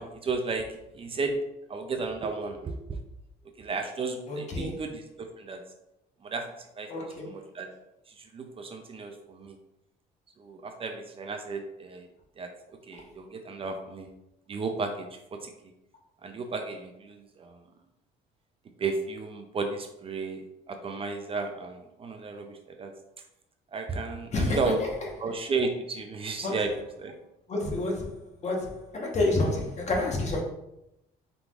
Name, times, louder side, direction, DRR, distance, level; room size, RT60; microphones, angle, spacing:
voice 1, 0.0-1.4 1.7-3.0 3.6-5.6 6.2-6.5 6.8-7.7 8.2-9.6 10.4-12.1 12.4-12.5 12.9-14.1 14.5-15.1 15.4-15.5 16.2-17.6 18.8-22.9 23.7-24.8 25.2-26.7 27.0-27.1, right 4 dB, 35° right, 0.5 m, -33 dB
voice 2, 4.3-4.9 6.9-7.4 24.3-24.9 26.4-26.6 27.5-30.4, left 2 dB, 40° left, 1.2 m, -29 dB
4.7 x 3.7 x 2.5 m
cardioid pair, 110°, 17 cm